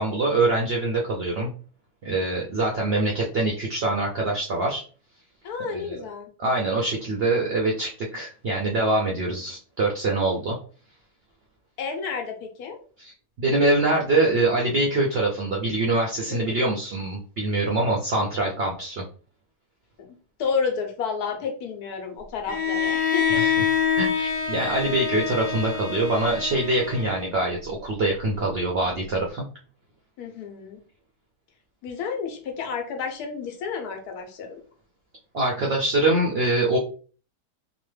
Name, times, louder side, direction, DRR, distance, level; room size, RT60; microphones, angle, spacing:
voice 1, 0.0-1.5 2.0-4.8 5.6-6.0 6.4-10.6 13.0-19.0 23.3-23.5 24.0-29.4 35.3-36.8, right 2 dB, 75° right, -1 dB, 0.5 m, -24 dB
voice 2, 5.4-6.3 11.8-12.8 16.3-16.8 20.0-20.1 20.4-23.4 30.2-30.8 31.8-34.6, left 5 dB, 80° left, 4 dB, 1.2 m, -31 dB
Bowed string instrument, 22.5-27.5, left 6 dB, 60° left, 1.1 m, -26 dB
2.9 x 2.1 x 3.2 m, 0.40 s
omnidirectional pair, 1.6 m